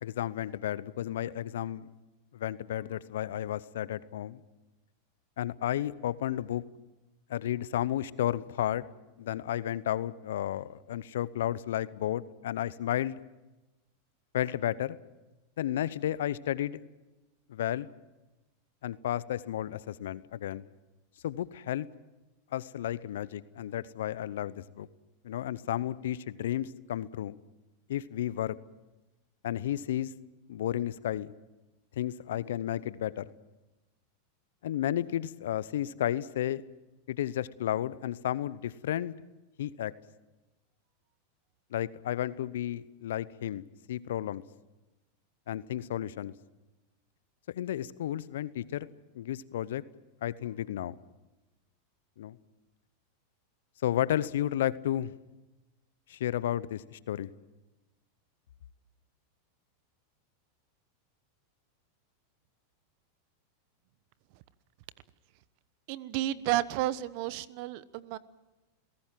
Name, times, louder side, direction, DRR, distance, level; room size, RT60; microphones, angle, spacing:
voice 1, 0.0-1.9 2.3-4.4 5.4-6.6 7.3-8.8 9.2-13.2 14.3-15.0 15.6-16.8 17.5-17.9 18.8-20.7 21.2-21.9 22.5-24.9 25.2-27.4 27.9-28.6 29.4-30.1 30.5-31.3 32.0-33.3 34.6-36.6 37.1-39.1 39.6-39.9 41.7-43.6 43.9-44.4 45.5-46.3 47.5-48.9 49.1-49.8 50.2-50.9 52.2-52.4 53.8-55.1 56.1-57.3, left 12 dB, 70° left, 18 dB, 0.8 m, -32 dB
voice 2, 65.9-68.2, right 14 dB, 55° right, 17 dB, 1.1 m, -31 dB
28.5 x 17.5 x 7.6 m, 1.1 s
hypercardioid pair, 100°, 0 cm